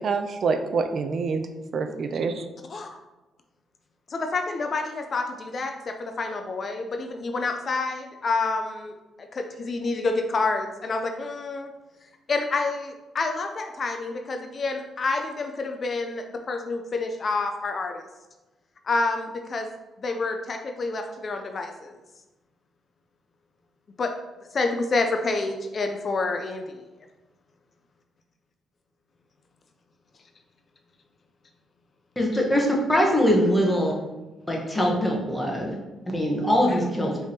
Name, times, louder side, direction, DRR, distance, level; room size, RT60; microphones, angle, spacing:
voice 1, 0.0-1.5 1.7-2.4, right 4 dB, 55° right, 7 dB, 0.3 m, -26 dB
voice 2, 4.1-8.9 9.2-11.7 12.3-18.1 18.8-19.7 20.0-21.9 24.0-24.1 24.5-26.8 36.7-36.8, left 3 dB, 45° left, 5 dB, 0.4 m, -28 dB
voice 3, 32.2-33.9 34.5-35.7 36.1-37.2, equal, 10° left, -1 dB, 1.1 m, -22 dB
4.8 x 3.4 x 2.8 m, 1.1 s
cardioid pair, 90°, 0 cm